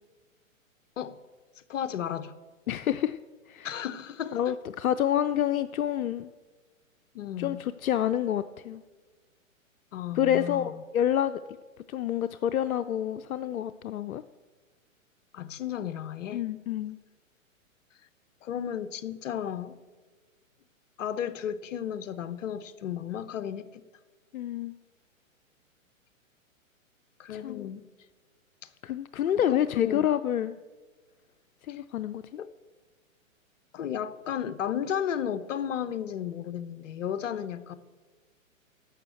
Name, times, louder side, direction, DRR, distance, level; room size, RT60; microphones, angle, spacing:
voice 1, 1.7-2.3 3.6-4.5 7.1-7.6 9.9-10.8 15.3-16.4 18.4-19.7 21.0-23.8 27.2-27.8 29.3-30.1 31.7-31.8 32.4-32.5 33.7-37.8, left 9 dB, 65° left, 13 dB, 0.9 m, -34 dB
voice 2, 2.7-3.2 3.5-3.7 4.3-6.3 7.4-8.8 10.1-11.4 11.9-14.2 16.3-17.0 24.3-24.7 27.3-27.7 28.8-30.5 31.7-32.2, left 10 dB, 85° left, 12 dB, 0.6 m, -28 dB
11.5 x 7.1 x 7.8 m, 1.3 s
hypercardioid pair, 130°, 41 cm